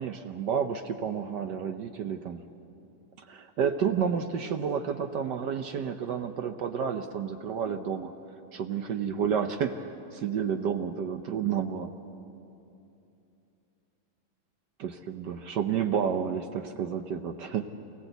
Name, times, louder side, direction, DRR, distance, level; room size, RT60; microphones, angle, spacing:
voice 1, 0.0-2.4 3.3-8.1 8.5-9.8 10.1-11.9 14.8-17.7, right 7 dB, 65° right, 7 dB, 1.2 m, -30 dB
27.5 x 17.0 x 8.0 m, 2.8 s
omnidirectional pair, 2.3 m